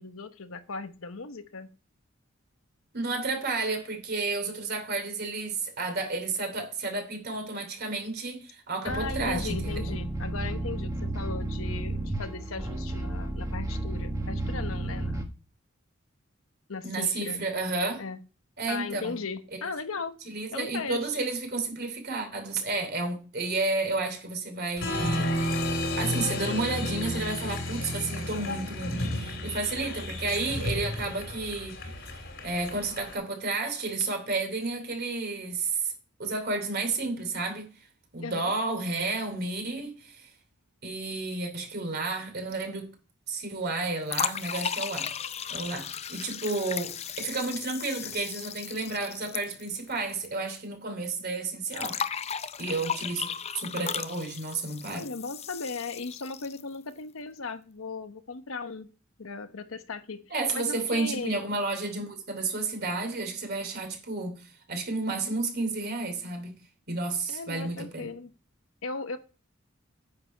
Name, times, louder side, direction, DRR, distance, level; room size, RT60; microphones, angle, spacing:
voice 1, 0.0-1.7 8.8-15.3 16.7-17.4 18.0-18.2 18.7-20.1 20.5-21.3 38.2-38.5 54.9-58.9 59.2-61.4 67.3-68.3 68.8-69.2, left 4 dB, 80° left, 1.0 m, -37 dB
voice 2, 2.9-10.0 16.8-18.0 18.6-19.2 20.2-25.7 26.0-32.1 32.4-35.9 36.2-37.7 38.1-40.3 40.8-42.9 43.3-45.1 45.5-52.0 52.6-53.3 53.5-55.1 60.3-66.5 66.9-68.1, right 3 dB, 50° right, 2.9 m, -31 dB
sound 1, 8.9-15.2, right 1 dB, 15° right, 1.1 m, -32 dB
Applause, 24.8-33.2, left 1 dB, 60° left, 2.6 m, -32 dB
sound 2, 44.1-50.3 50.5-50.6 51.7-56.8, left 8 dB, 30° left, 0.5 m, -35 dB
9.7 x 6.9 x 5.4 m
head